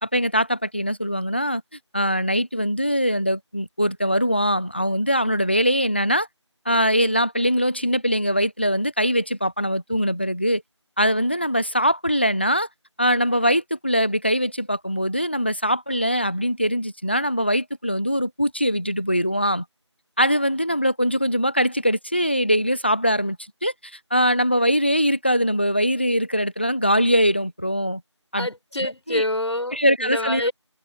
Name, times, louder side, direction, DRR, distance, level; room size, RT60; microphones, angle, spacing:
voice 1, 0.0-1.6 1.9-6.3 6.7-10.6 11.0-12.7 13.0-19.6 20.2-23.4 23.6-28.0 28.3-28.5 28.8-29.2 29.7-30.5, equal, 20° left, 0.6 m, -22 dB
voice 2, 28.3-30.5, left 1 dB, 65° left, 6.3 m, -27 dB
figure-of-eight pair, 170°, 15 cm